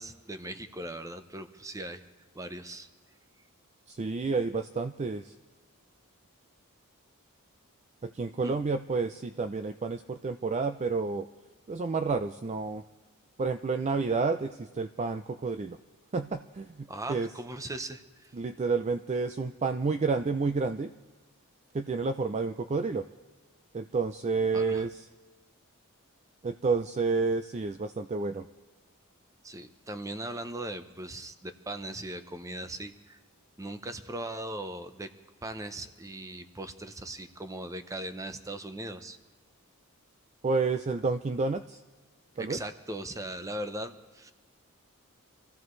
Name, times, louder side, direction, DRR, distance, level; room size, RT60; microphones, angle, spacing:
voice 1, 0.0-2.0 2.3-2.9 8.4-8.6 16.9-18.3 24.5-24.8 29.4-33.2 33.6-35.1 35.4-39.2 42.4-44.3, right 1 dB, 15° right, 9 dB, 0.7 m, -39 dB
voice 2, 3.9-5.3 8.0-11.3 11.7-12.8 13.4-15.8 16.1-17.3 18.3-20.9 21.7-23.0 23.7-25.1 26.4-28.4 40.4-41.8 42.4-42.6, right 4 dB, 30° right, 9 dB, 0.4 m, -30 dB
26.5 x 15.5 x 3.2 m, 1.3 s
head